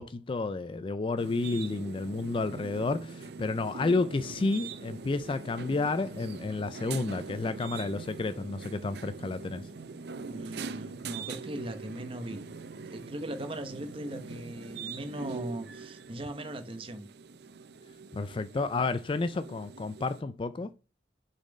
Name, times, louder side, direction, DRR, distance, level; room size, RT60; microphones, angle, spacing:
voice 1, 0.0-9.7 18.1-20.7, left 3 dB, 25° left, 0.3 m, -31 dB
sound 1, 1.2-20.2, right 4 dB, 55° right, 0.5 m, -43 dB
voice 2, 10.3-12.4 12.8-17.1, right 1 dB, 30° right, 0.9 m, -39 dB
6.3 x 4.2 x 5.0 m
head